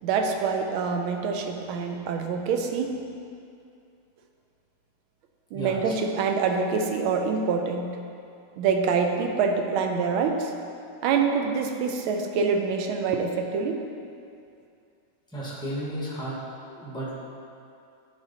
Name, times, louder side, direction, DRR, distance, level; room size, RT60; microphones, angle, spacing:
voice 1, 0.0-2.9 5.5-7.9 8.6-10.5 11.0-13.8, right 5 dB, 80° right, 4 dB, 1.4 m, -25 dB
voice 2, 5.5-5.9 15.3-16.4 16.7-17.1, right 1 dB, 5° left, -7 dB, 0.3 m, -33 dB
9.9 x 3.6 x 4.0 m, 2.5 s
omnidirectional pair, 2.4 m